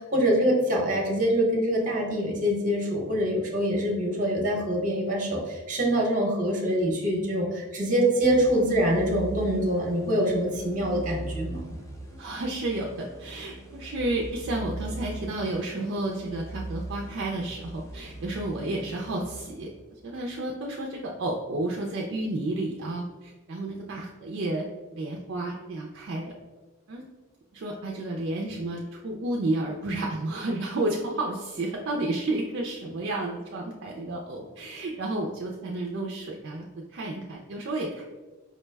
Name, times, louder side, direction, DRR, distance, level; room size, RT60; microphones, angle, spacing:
voice 1, 0.0-11.7, equal, 40° right, 0 dB, 0.8 m, -25 dB
sound 1, 8.2-20.1, right 2 dB, 15° left, 0.4 m, -40 dB
voice 2, 12.2-19.7 20.0-26.3 26.9-27.0 27.5-38.0, right 2 dB, 55° right, 0 dB, 0.4 m, -31 dB
5.1 x 2.1 x 3.3 m, 1.3 s
head